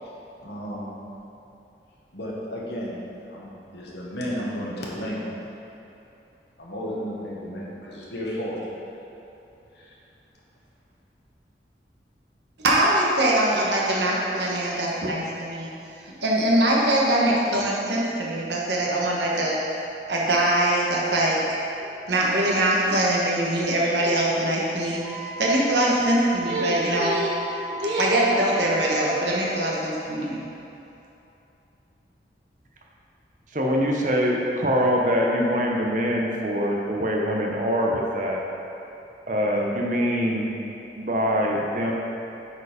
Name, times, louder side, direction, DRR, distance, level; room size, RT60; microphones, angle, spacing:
voice 1, 0.4-0.9 2.1-3.0 3.3-5.5 6.6-8.6 9.7-10.0, equal, 75° left, -5 dB, 1.6 m, -33 dB
voice 2, 12.6-15.7 16.2-19.6 20.1-21.4 21.8-27.4 27.7-30.4, right 1 dB, 80° right, -4 dB, 1.2 m, -23 dB
Wind instrument woodwind instrument, 25.0-29.8, equal, 10° left, 0.6 m, -37 dB
voice 3, 33.5-38.4 39.3-40.5 41.0-41.9, equal, 45° right, -1 dB, 0.8 m, -24 dB
8.2 x 4.7 x 5.0 m, 2.9 s
head